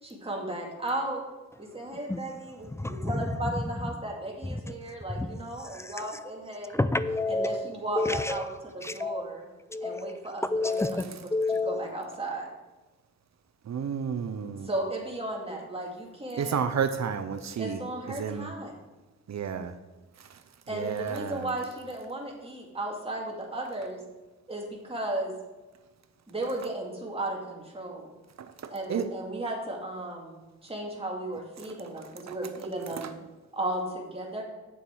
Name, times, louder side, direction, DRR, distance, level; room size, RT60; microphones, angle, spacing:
voice 1, 0.0-1.2 1.6-6.8 7.3-9.4 9.8-10.8 11.1-11.2 11.5-12.5 14.6-16.6 17.6-18.7 20.7-24.0 24.5-25.3 26.3-28.1 28.7-33.2 33.5-34.4, right 1 dB, 20° right, 2.2 m, -35 dB
voice 2, 2.7-3.1 5.2-5.3 6.7-7.7 8.0-8.4 8.9-9.2 9.7-10.2 10.5-11.9, left 2 dB, 10° left, 0.4 m, -29 dB
voice 3, 13.7-14.7 16.4-17.8 18.2-18.5 19.3-19.8 20.2-20.4 20.7-21.5 28.4-29.1 32.3-32.4 33.0-33.1, right 7 dB, 65° right, 0.6 m, -31 dB
8.8 x 6.9 x 4.7 m
wide cardioid pair, 95°, 29 cm